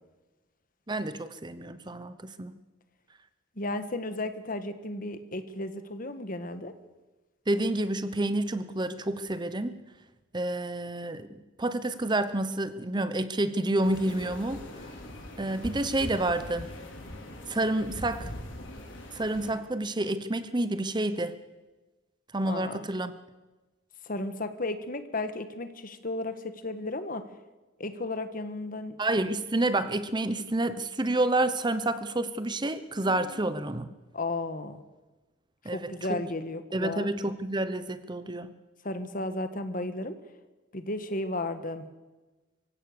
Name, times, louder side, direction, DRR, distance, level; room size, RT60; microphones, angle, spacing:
voice 1, 0.9-2.5 7.5-9.8 10.3-11.3 11.6-14.7 15.4-16.7 17.5-18.3 19.1-21.3 22.3-23.1 29.0-33.9 35.6-35.9 36.7-38.5, right 1 dB, 20° right, 12 dB, 0.9 m, -29 dB
voice 2, 3.5-6.7 22.5-22.8 24.0-27.2 27.8-29.0 33.1-33.5 34.1-34.8 35.6-37.1 38.8-40.2 40.7-41.8, left 2 dB, 45° left, 10 dB, 1.5 m, -34 dB
sound 1, 13.8-19.5, left 1 dB, 70° left, 4.1 m, -42 dB
25.0 x 16.0 x 6.8 m, 1.2 s
head